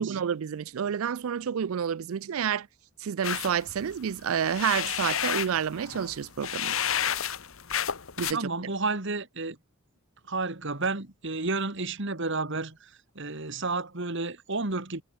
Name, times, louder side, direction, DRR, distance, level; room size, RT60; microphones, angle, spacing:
voice 1, 0.0-2.7 3.0-6.8 8.2-8.4, right 8 dB, 75° right, 0.4 m, -29 dB
sound 1, 3.2-8.3, left 9 dB, 70° left, 1.6 m, -31 dB
voice 2, 8.3-9.6 10.3-15.0, right 3 dB, 55° right, 2.2 m, -31 dB
head